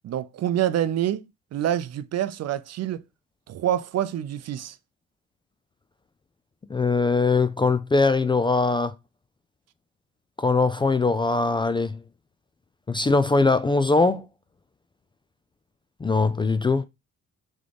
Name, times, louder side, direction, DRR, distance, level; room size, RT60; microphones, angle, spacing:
voice 1, 0.0-1.3 1.5-3.0 3.5-4.8, right 11 dB, 55° right, 0.5 m, -26 dB
voice 2, 6.7-8.9 10.4-12.0 12.9-14.3 16.0-16.8, left 3 dB, 15° left, 0.3 m, -21 dB
3.7 x 3.2 x 3.4 m
cardioid pair, 90°, 30 cm